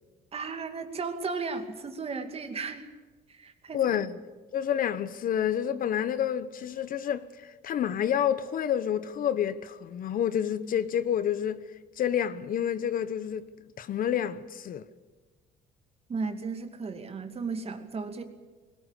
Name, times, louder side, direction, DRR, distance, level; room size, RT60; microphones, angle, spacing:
voice 1, 0.3-2.9 3.3-4.0 16.1-18.2, right 4 dB, 35° right, 2.5 m, -35 dB
voice 2, 3.7-4.2 4.5-11.6 12.0-13.5 13.8-14.9, left 9 dB, 55° left, 1.0 m, -29 dB
21.0 x 19.5 x 8.4 m
cardioid pair, 110°, 17 cm